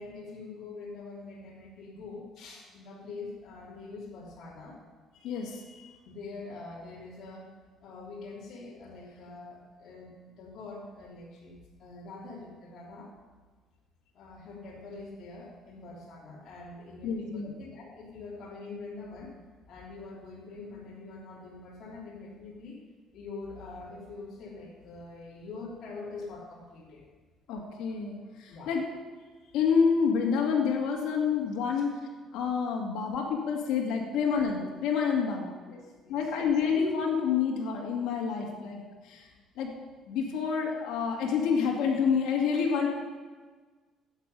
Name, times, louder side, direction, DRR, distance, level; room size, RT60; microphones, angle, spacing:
voice 1, 0.0-4.8 6.0-7.5 7.8-13.1 14.1-19.3 19.7-22.8 23.1-27.0 28.5-28.7 31.6-31.8 35.7-36.3, left 3 dB, 55° left, -6 dB, 3.2 m, -44 dB
voice 2, 5.2-5.9 17.0-17.5 27.5-28.9 29.5-31.9 32.3-35.6 36.1-39.2 39.6-39.7 40.1-42.9, left 6 dB, 75° left, -1 dB, 2.2 m, -28 dB
11.5 x 8.4 x 5.5 m, 1.4 s
cardioid pair, 125°, 0 cm